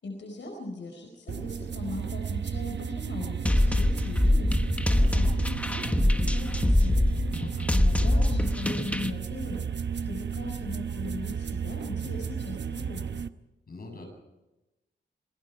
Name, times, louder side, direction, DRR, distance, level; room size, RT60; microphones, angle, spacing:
voice 1, 0.0-7.1 7.7-9.6 10.1-13.0, left 2 dB, 80° left, 2 dB, 4.6 m, -39 dB
sound 1, 1.3-13.3, right 7 dB, 70° right, 0.9 m, -34 dB
sound 2, 3.5-9.1, left 1 dB, 5° left, 1.1 m, -24 dB
voice 2, 7.3-7.7 13.7-14.1, left 3 dB, 50° left, 3 dB, 7.8 m, -44 dB
27.0 x 22.0 x 4.6 m, 1.0 s
wide cardioid pair, 115°, 19 cm